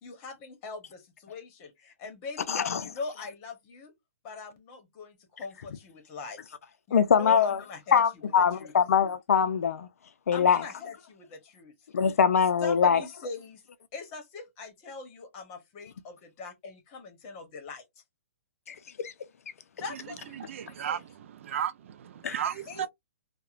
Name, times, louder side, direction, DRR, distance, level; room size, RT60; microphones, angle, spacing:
voice 1, 0.0-3.9 4.2-6.6 6.9-8.0 8.5-8.7 10.3-11.7 12.6-13.6 13.9-17.8 19.8-21.0 22.7-22.9, left 4 dB, 30° left, 1.0 m, -41 dB
voice 2, 2.5-2.9 6.9-7.6 7.9-9.9 10.3-10.6 11.9-13.0 18.7-19.1 22.2-22.4, left 7 dB, 75° left, 0.4 m, -23 dB
voice 3, 20.3-22.9, right 9 dB, 60° right, 0.3 m, -34 dB
2.8 x 2.1 x 2.4 m
hypercardioid pair, 145°, 8 cm